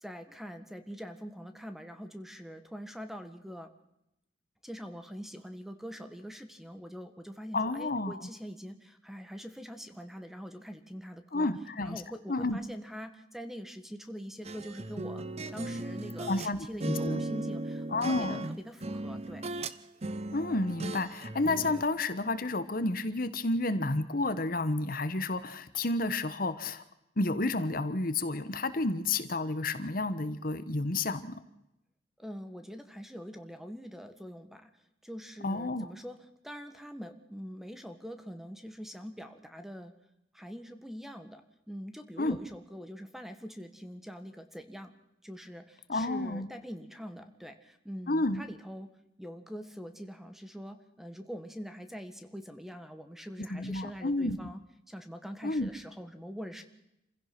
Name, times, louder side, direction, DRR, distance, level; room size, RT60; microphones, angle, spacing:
voice 1, 0.0-3.7 4.6-11.5 11.8-15.2 15.5-19.4 32.2-34.7 35.0-36.2 36.4-39.9 40.3-44.9 45.2-48.9 49.2-54.6 54.9-56.6, equal, ahead, 8 dB, 1.6 m, -44 dB
voice 2, 7.5-8.3 11.3-12.0 12.3-12.6 16.3-17.2 17.9-18.5 20.3-26.8 27.2-31.3 35.4-35.9 42.2-42.4 45.9-46.5 48.1-48.4 53.5-54.4 55.4-55.7, left 2 dB, 55° left, 11 dB, 1.3 m, -31 dB
sound 1, 14.4-16.5 16.8-19.8 20.0-21.9, right 2 dB, 35° right, 0.9 m, -37 dB
27.5 x 16.0 x 6.1 m, 0.85 s
head